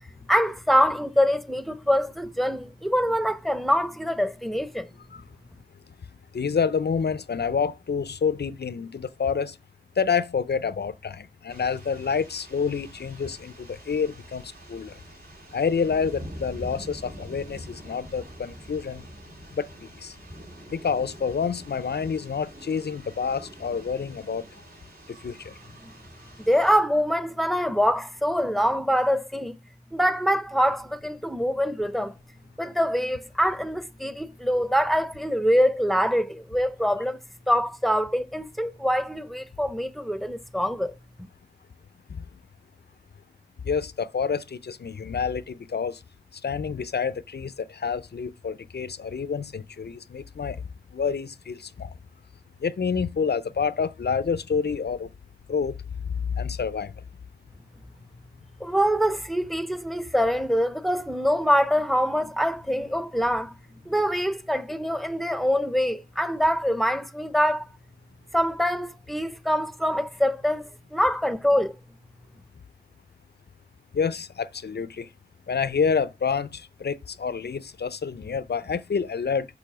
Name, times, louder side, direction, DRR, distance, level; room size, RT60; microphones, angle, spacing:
voice 1, 0.3-4.9 26.4-29.5 29.9-32.1 32.6-37.2 37.5-40.9 58.6-63.6 63.9-67.7 68.3-71.7, equal, ahead, 0.7 m, -24 dB
voice 2, 6.3-9.6 10.0-15.0 15.5-19.0 19.5-19.7 20.0-20.1 20.7-24.4 25.2-25.5 42.1-42.2 43.6-46.0 46.4-50.6 50.9-51.9 52.6-55.1 55.5-55.8 56.2-56.9 73.9-75.1 75.5-79.5, left 6 dB, 90° left, 0.5 m, -28 dB
sound 1, 11.5-26.8, equal, 65° right, 2.6 m, -45 dB
6.9 x 5.5 x 6.0 m
wide cardioid pair, 55°, 17 cm